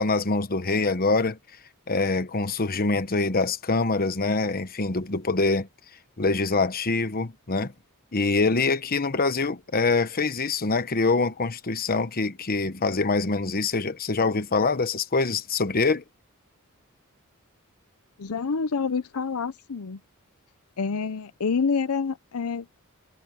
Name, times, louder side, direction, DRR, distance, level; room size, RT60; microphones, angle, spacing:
voice 1, 0.0-1.4 1.9-5.7 6.2-7.7 8.1-16.0, left 3 dB, 40° left, 1.1 m, -24 dB
voice 2, 18.2-20.0 20.8-22.7, left 5 dB, 75° left, 0.7 m, -27 dB
head